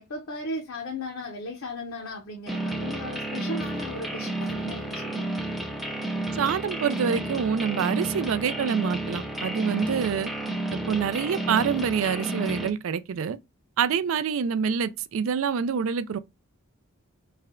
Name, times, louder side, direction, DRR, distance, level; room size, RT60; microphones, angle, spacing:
voice 1, 0.0-5.4, left 2 dB, 75° left, 0.7 m, -36 dB
sound 1, 2.5-12.7, right 2 dB, ahead, 0.4 m, -31 dB
voice 2, 6.3-10.3 10.7-13.4 13.8-16.2, right 7 dB, 65° right, 0.3 m, -26 dB
3.2 x 2.2 x 3.6 m
head